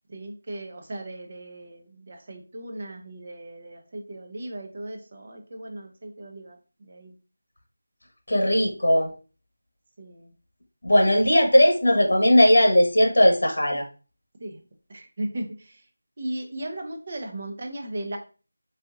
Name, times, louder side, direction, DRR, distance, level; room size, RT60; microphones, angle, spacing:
voice 1, 0.1-7.1 10.0-10.3 14.4-14.6 14.9-15.8 16.2-18.2, right 1 dB, 35° right, 3 dB, 0.7 m, -37 dB
voice 2, 8.3-9.1 10.8-13.8, left 1 dB, 75° left, 2 dB, 1.1 m, -18 dB
4.2 x 2.7 x 2.4 m, 0.35 s
figure-of-eight pair, 175°, 0 cm